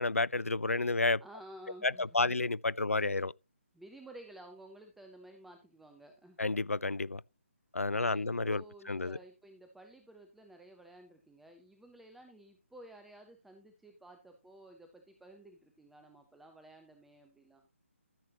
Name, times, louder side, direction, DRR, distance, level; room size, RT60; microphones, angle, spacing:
voice 1, 0.0-1.2 1.8-3.3 6.4-7.2 7.7-8.6 8.9-9.2, left 3 dB, 85° left, 0.4 m, -30 dB
voice 2, 1.2-2.3 3.7-6.4 7.9-17.7, right 1 dB, ahead, 0.7 m, -54 dB
13.5 x 7.5 x 2.9 m
figure-of-eight pair, 145°, 7 cm